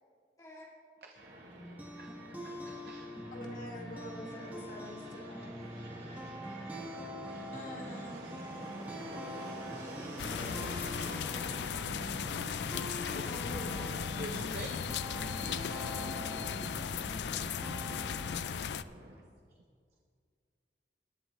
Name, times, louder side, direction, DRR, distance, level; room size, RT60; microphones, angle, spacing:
voice 1, 0.4-0.7 9.3-11.7 16.0-16.8, right 1 dB, 20° left, -5 dB, 2.8 m, -52 dB
Fixed-wing aircraft airplane, 1.1-19.2, right 1 dB, 80° right, 3.1 m, -49 dB
sound 1, 1.5-18.4, equal, 10° right, 1.5 m, -44 dB
voice 2, 2.0-3.1 14.2-14.7, right 2 dB, 55° right, 3 dB, 0.7 m, -46 dB
voice 3, 3.3-6.6 7.5-8.3 13.0-13.8, left 1 dB, 45° left, 0 dB, 1.8 m, -47 dB
sound 2, 10.2-18.8, left 7 dB, 75° left, 0.4 m, -37 dB
20.0 x 11.0 x 3.1 m, 2.1 s
head